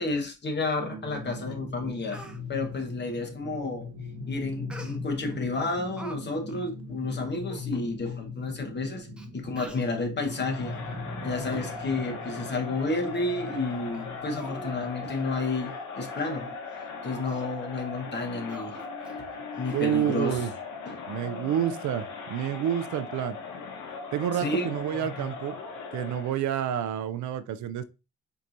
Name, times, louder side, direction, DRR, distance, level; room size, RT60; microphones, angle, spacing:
voice 1, 0.0-2.2 2.5-3.9 4.3-9.1 9.3-10.7 11.1-16.6 17.0-18.8 19.6-20.4 20.9-21.0 24.3-24.7 25.2-25.3, left 3 dB, 35° left, 1.1 m, -31 dB
sound 1, 0.8-14.9, left 3 dB, 55° right, 1.2 m, -40 dB
Speech, 1.4-1.5 1.8-2.4 4.7-5.3 5.7-6.2 6.5-6.7 7.2-7.3 7.5-7.7 8.4-8.5 9.2-9.3 9.6-9.9 10.6-10.8 11.2-11.9 12.2-12.4 12.8-12.9 13.5-13.6 13.9-14.1 14.4-14.8 15.1-15.2 15.6-15.8 16.2-16.3 16.7-16.9 17.2-17.4 18.5-19.2 19.5-19.6, right 1 dB, 5° right, 0.6 m, -46 dB
Crowd, 10.3-26.4, left 4 dB, 80° left, 0.9 m, -39 dB
voice 2, 19.7-20.5 21.1-23.4 24.1-25.6 25.9-27.8, right 10 dB, 70° right, 0.5 m, -29 dB
4.5 x 2.9 x 2.5 m
cardioid pair, 90°, 30 cm